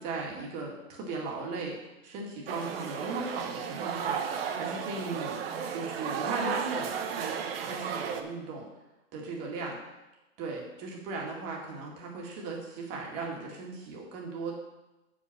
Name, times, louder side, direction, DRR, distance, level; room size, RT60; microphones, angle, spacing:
voice 1, 0.0-1.8 2.0-5.4 5.7-8.7 9.1-9.8 10.4-14.5, right 3 dB, 30° right, -1 dB, 1.9 m, -37 dB
sound 1, 2.5-8.2, right 7 dB, 50° right, 0.9 m, -34 dB
7.6 x 5.3 x 6.0 m, 1.0 s
hypercardioid pair, 155°, 38 cm